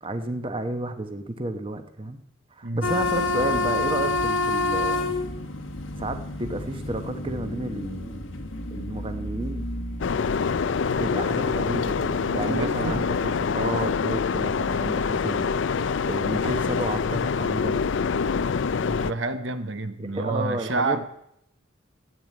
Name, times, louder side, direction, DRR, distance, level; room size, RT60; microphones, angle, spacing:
voice 1, 0.0-2.2 2.5-5.2 6.0-8.2 8.7-9.7 10.9-15.5 16.1-17.8 20.0-21.0, right 1 dB, 25° right, 7 dB, 1.0 m, -31 dB
sound 1, 2.8-11.6, left 2 dB, 90° left, 1.6 m, -29 dB
sound 2, 10.0-19.1, left 5 dB, 70° left, 0.4 m, -25 dB
voice 2, 12.2-13.1 18.8-21.0, right 3 dB, 70° right, 9 dB, 1.0 m, -29 dB
14.5 x 9.0 x 8.7 m, 0.77 s
head